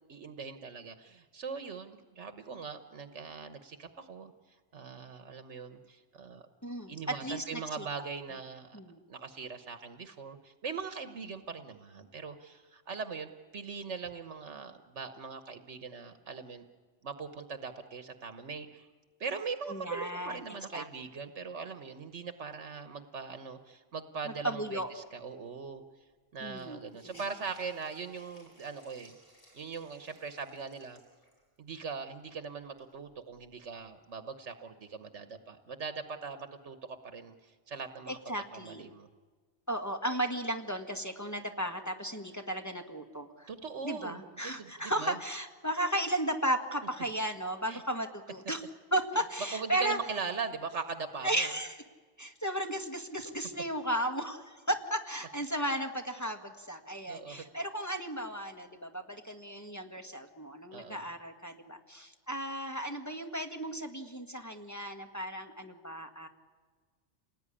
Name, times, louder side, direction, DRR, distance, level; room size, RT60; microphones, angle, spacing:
voice 1, 0.1-4.3 4.7-6.5 6.9-8.8 9.1-16.7 17.0-18.9 19.2-25.8 26.3-29.2 29.5-31.0 31.6-39.1 43.5-45.2 47.7-47.8 49.5-51.5 53.2-53.3 57.1-57.4 60.7-61.1, right 5 dB, 75° right, 9 dB, 1.5 m, -41 dB
voice 2, 6.6-7.8 8.7-9.0 19.7-20.4 20.7-20.8 24.4-24.9 26.4-27.2 38.1-38.9 39.7-43.5 43.8-48.6 48.9-50.0 51.2-51.8 52.2-66.3, right 1 dB, 15° left, 3 dB, 1.6 m, -35 dB
Hiss, 26.0-26.1 26.5-31.6 32.1-32.2 32.6-34.0, equal, 50° left, 8.2 m, -61 dB
28.5 x 19.0 x 9.9 m, 1.5 s
omnidirectional pair, 1.2 m